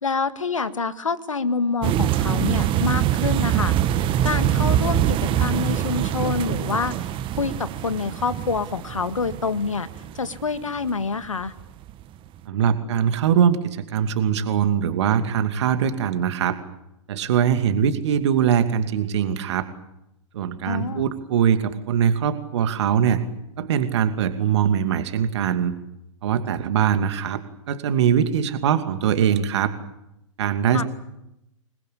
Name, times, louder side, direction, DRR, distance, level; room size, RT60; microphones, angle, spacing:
voice 1, 0.0-7.1 7.4-9.9 10.1-11.5 20.6-21.1 30.7-30.8, left 4 dB, 80° left, 12 dB, 1.8 m, -27 dB
sound 1, 1.8-10.9 11.4-11.6 11.9-12.0, right 11 dB, 30° right, 1.5 m, -24 dB
voice 2, 12.5-16.6 17.1-19.7 20.3-23.2 23.6-25.7 26.2-29.7 30.4-30.8, right 8 dB, 60° right, 8 dB, 2.5 m, -22 dB
27.0 x 21.0 x 8.7 m, 0.86 s
figure-of-eight pair, 100°, 16 cm